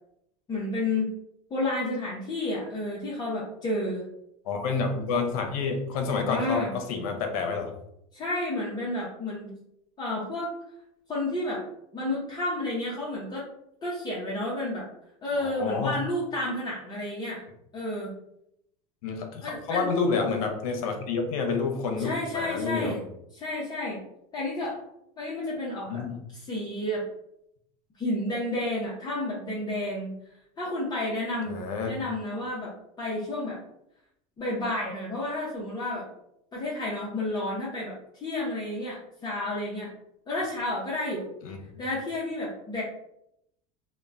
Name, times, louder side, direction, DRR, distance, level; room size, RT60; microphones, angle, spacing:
voice 1, 0.5-1.1 1.5-4.0 6.3-6.7 8.1-9.5 10.0-10.5 11.1-11.7 11.9-13.5 13.8-14.9 15.2-17.4 17.7-18.1 19.4-19.9 22.0-23.0 23.3-24.0 24.3-24.8 25.2-26.0 26.3-27.1 28.0-30.1 30.6-33.6 34.4-36.1 36.5-39.9 40.3-41.3 41.8-42.8, left 1 dB, 20° left, -6 dB, 0.6 m, -31 dB
voice 2, 4.4-7.7 15.4-15.9 19.0-23.0 25.9-26.2 31.5-31.9 41.4-41.8, left 4 dB, 80° left, 4 dB, 0.6 m, -29 dB
2.9 x 2.1 x 2.4 m, 0.79 s
supercardioid pair, 120°, 18 cm